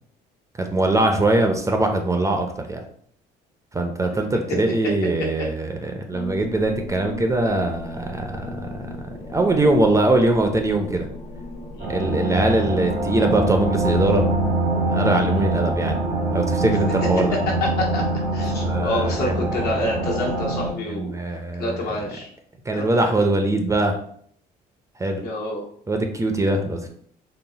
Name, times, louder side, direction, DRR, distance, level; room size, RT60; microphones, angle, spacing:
voice 1, 0.6-2.8 3.7-8.7 9.3-11.1 11.9-14.2 14.9-16.0 16.3-17.4 18.6-19.6 20.9-21.8 22.7-23.9 25.0-25.2 25.9-26.9, right 2 dB, 20° right, 4 dB, 0.5 m, -22 dB
sound 1, 6.1-14.5, left 2 dB, 40° left, 0.8 m, -37 dB
sound 2, 11.8-20.7, right 2 dB, 90° right, 1.5 m, -24 dB
voice 2, 17.6-18.0 18.3-21.2 21.6-22.3 22.7-22.9 25.2-25.6, left 1 dB, 70° left, -2 dB, 1.3 m, -28 dB
3.9 x 2.1 x 3.9 m, 0.62 s
cardioid pair, 110°, 17 cm